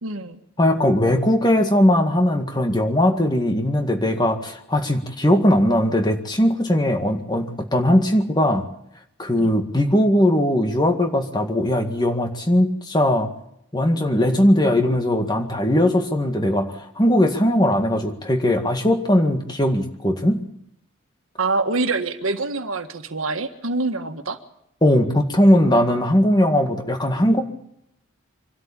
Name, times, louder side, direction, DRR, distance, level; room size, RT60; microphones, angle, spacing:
voice 1, 0.0-0.4 9.4-9.5 21.4-24.4, right 3 dB, 75° right, 7 dB, 1.7 m, -25 dB
voice 2, 0.6-8.6 9.2-13.3 13.7-20.4 24.8-27.4, left 1 dB, 20° left, 5 dB, 1.9 m, -19 dB
25.0 x 13.0 x 8.8 m, 0.76 s
head